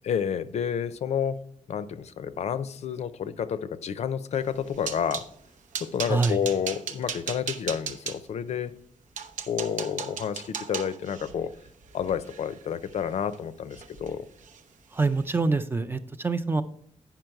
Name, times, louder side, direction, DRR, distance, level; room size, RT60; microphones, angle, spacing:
voice 1, 0.0-5.2 5.8-8.7 9.5-11.5 11.9-14.3, left 8 dB, 60° left, 14 dB, 0.5 m, -30 dB
sound 1, 4.4-5.3 5.7-8.2 8.8-8.9 9.2-13.4 13.7-14.1 14.4-14.6 15.0-15.2, right 6 dB, 90° right, 0.8 m, -37 dB
voice 2, 6.1-6.4 14.9-16.6, right 3 dB, 15° right, 9 dB, 0.4 m, -25 dB
8.9 x 5.8 x 4.6 m, 0.64 s
wide cardioid pair, 180°, 13 cm